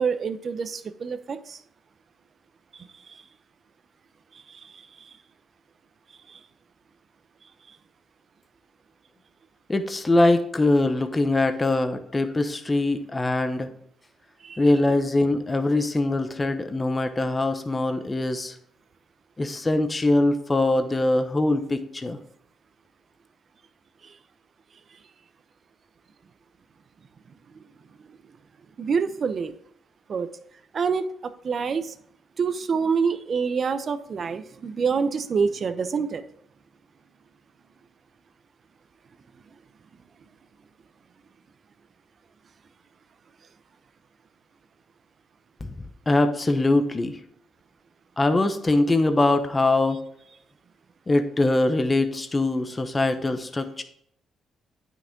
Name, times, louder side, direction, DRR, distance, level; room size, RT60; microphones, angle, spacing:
voice 1, 0.0-1.6 2.8-3.2 4.5-5.1 6.3-6.4 14.4-14.6 24.0-24.1 28.8-29.5 30.1-30.3 30.7-31.0 31.4-31.9 32.4-36.2, right 5 dB, 45° right, 11 dB, 0.7 m, -27 dB
voice 2, 9.7-13.7 14.6-18.5 19.4-22.2 45.6-45.7 46.1-47.2 48.2-50.0 51.1-53.8, left 2 dB, 20° left, 8 dB, 0.9 m, -22 dB
9.6 x 6.1 x 3.8 m, 0.68 s
cardioid pair, 90°, 0 cm